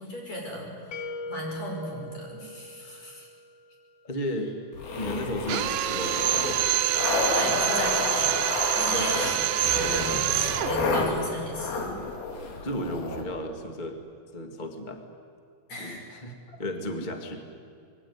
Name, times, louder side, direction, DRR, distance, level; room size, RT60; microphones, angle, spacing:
voice 1, 0.0-3.3 7.3-8.5 8.8-12.0 15.7-16.0, equal, 45° left, 0 dB, 6.9 m, -35 dB
sound 1, 0.9-3.8, left 2 dB, 60° left, 2.7 m, -40 dB
voice 2, 2.8-3.2 4.0-4.5 5.0-6.6 8.8-9.1 10.3-10.4 12.6-14.0 14.3-15.0 15.8-16.3 16.6-17.4, left 1 dB, 25° left, 5 dB, 1.1 m, -34 dB
sound 2, 4.7-13.2, left 3 dB, 85° left, 4.6 m, -30 dB
Drill, 5.5-10.8, right 13 dB, 80° right, 2.4 m, -26 dB
26.5 x 21.0 x 9.6 m, 2.4 s
omnidirectional pair, 4.2 m